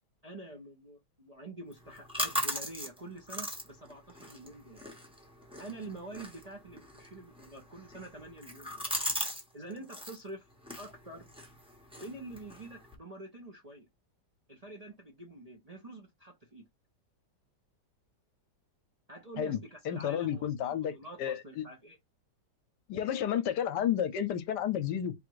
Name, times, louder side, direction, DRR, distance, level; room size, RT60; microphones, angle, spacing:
voice 1, 0.2-4.8 5.6-8.9 9.5-10.5 10.8-11.3 12.0-13.9 14.5-16.7 19.1-22.0, right 2 dB, 35° right, 0.7 m, -47 dB
sound 1, 1.7-9.4 9.7-10.2 10.6-12.9, equal, 5° right, 1.1 m, -39 dB
voice 2, 19.4-20.9 21.2-21.6 22.9-25.1, left 9 dB, 75° left, 1.2 m, -31 dB
3.6 x 2.5 x 4.6 m
omnidirectional pair, 1.9 m